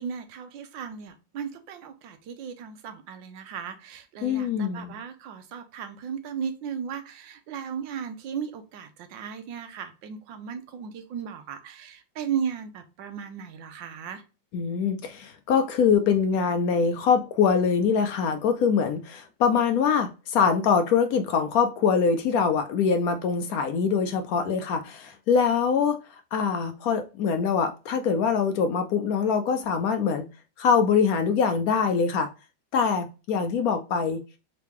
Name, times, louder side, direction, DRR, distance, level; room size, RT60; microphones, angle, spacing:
voice 1, 0.0-14.2, right 7 dB, 75° right, 1.4 m, -36 dB
voice 2, 4.2-5.0 14.5-26.0 26.3-30.3 30.6-32.3 32.7-34.2, left 6 dB, 75° left, 0.8 m, -23 dB
3.8 x 3.5 x 3.0 m
omnidirectional pair, 2.0 m